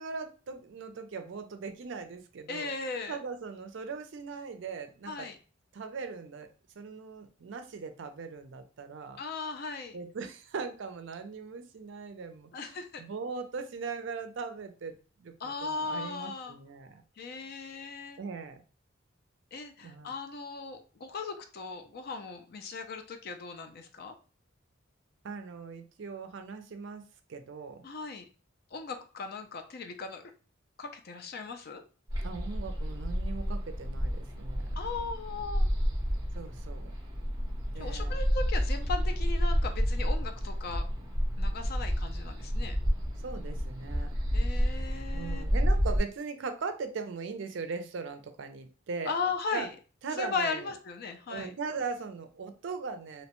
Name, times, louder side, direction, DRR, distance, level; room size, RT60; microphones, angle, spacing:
voice 1, 0.0-5.3 5.7-6.5 6.8-9.2 9.9-14.9 15.2-17.0 18.2-18.6 19.8-20.1 25.2-27.0 27.3-27.8 32.2-34.7 36.3-36.9 37.7-38.2 43.2-44.1 45.1-49.1 49.5-49.7 50.0-50.7 51.3-53.3, right 4 dB, 65° right, 7 dB, 0.4 m, -39 dB
voice 2, 2.5-3.2 5.1-5.4 9.2-10.0 12.5-13.0 15.4-16.6 17.2-18.2 19.5-24.1 27.8-28.3 28.7-30.2 30.8-31.8 34.8-35.7 37.8-40.8 41.4-42.8 44.3-45.5 49.1-49.7 50.2-51.5, left 4 dB, 50° left, 6 dB, 0.4 m, -37 dB
sound 1, 32.1-46.0, equal, 20° right, 0.7 m, -30 dB
2.8 x 2.1 x 2.9 m, 0.36 s
head